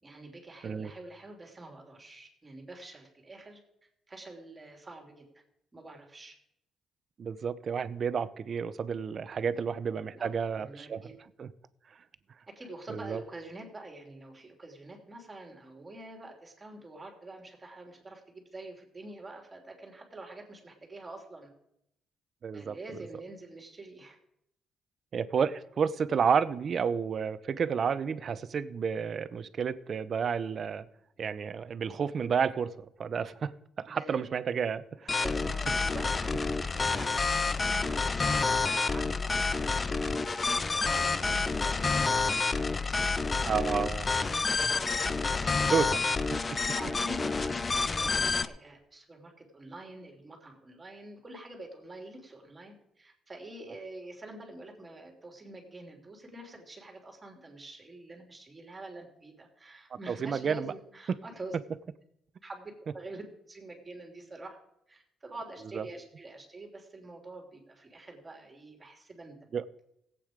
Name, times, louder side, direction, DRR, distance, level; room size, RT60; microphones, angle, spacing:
voice 1, 0.0-3.6 4.1-5.4 5.7-6.4 9.3-9.6 10.1-10.3 10.6-11.1 12.5-21.5 22.5-24.2 33.9-34.2 35.2-46.1 46.5-61.5 62.4-64.6 64.9-69.4, right 2 dB, 25° right, 3.2 m, -47 dB
voice 2, 7.2-11.1 11.4-11.5 12.9-13.2 22.4-22.8 25.1-30.9 31.2-35.2 43.4-44.1 44.6-44.7 45.7-45.9 46.3-46.7 60.1-60.7 65.7-65.8 69.5-69.6, right 6 dB, 50° right, 0.7 m, -31 dB
sound 1, 35.1-48.5, left 4 dB, 30° left, 0.6 m, -29 dB
17.0 x 8.5 x 5.1 m
cardioid pair, 90°, 0 cm